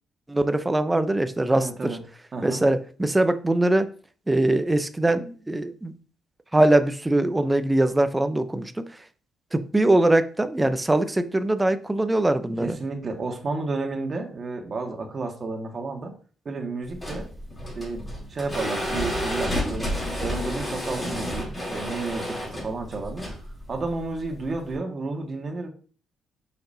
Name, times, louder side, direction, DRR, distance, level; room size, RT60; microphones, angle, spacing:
voice 1, 0.3-2.0 2.4-3.9 4.3-5.9 6.5-9.0 9.5-12.8, right 1 dB, 15° right, 0.7 m, -22 dB
voice 2, 1.5-2.0 2.3-2.6 12.6-16.1 16.5-17.3 17.7-19.9 20.2-23.3 23.7-25.7, right 3 dB, 40° right, 1.7 m, -31 dB
sound 1, 16.9-24.7, equal, 20° left, 3.3 m, -31 dB
6.6 x 6.1 x 2.8 m
cardioid pair, 90°, 0 cm